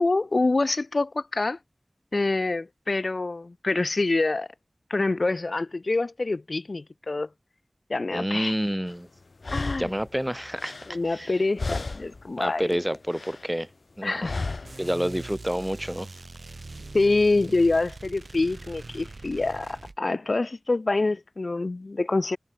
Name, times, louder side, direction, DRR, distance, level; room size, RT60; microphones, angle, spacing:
voice 1, 0.0-1.6 2.1-4.5 4.9-7.3 7.9-8.5 9.5-9.9 10.9-12.7 14.0-14.3 16.9-22.4, left 3 dB, 70° left, 2.1 m, -26 dB
voice 2, 8.1-9.1 9.8-11.4 11.7-11.8 12.4-13.7 14.0-14.3 14.8-16.1, equal, 10° right, 1.5 m, -29 dB
sound 1, 8.9-9.0 9.4-11.3 11.6-12.3 12.6-13.5 14.2-14.9, left 3 dB, 85° left, 6.9 m, -34 dB
sound 2, 14.6-20.0, right 2 dB, 65° right, 2.9 m, -42 dB
wide cardioid pair, 55°, 0 cm